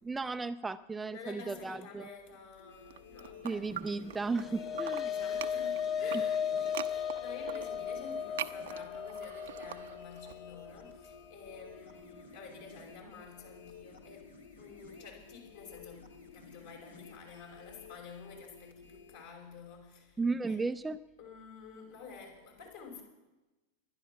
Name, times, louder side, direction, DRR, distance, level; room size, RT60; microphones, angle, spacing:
voice 1, 0.0-2.1 3.4-5.1 20.2-21.0, right 3 dB, 10° right, 10 dB, 0.5 m, -35 dB
voice 2, 1.1-4.0 5.0-20.6 21.2-23.0, left 5 dB, 55° left, 1 dB, 5.6 m, -50 dB
sound 1, 2.6-19.2, left 5 dB, 70° left, 2.2 m, -54 dB
sound 2, 2.8-4.5 4.7-10.3, right 11 dB, 60° right, 0.7 m, -43 dB
sound 3, 4.0-12.6, left 7 dB, 25° left, 0.8 m, -36 dB
20.5 x 11.5 x 6.1 m, 1.1 s
figure-of-eight pair, 90°, 0 cm